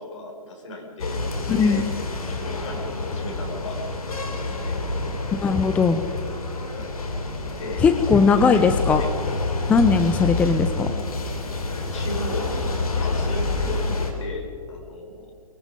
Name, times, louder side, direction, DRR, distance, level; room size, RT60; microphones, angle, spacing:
voice 1, 0.0-1.8 2.3-4.8 6.7-7.0 7.6-7.8 8.2-9.1 10.0-10.5 11.9-12.6 13.0-15.3, left 2 dB, 60° left, 2 dB, 6.3 m, -36 dB
sound 1, 1.0-14.1, left 3 dB, 85° left, 4.2 m, -28 dB
voice 2, 1.5-1.9 5.3-6.0 7.8-9.0 9.7-10.9, left 5 dB, 5° left, 9 dB, 0.5 m, -19 dB
23.5 x 21.0 x 5.3 m, 2.2 s
hypercardioid pair, 150°, 18 cm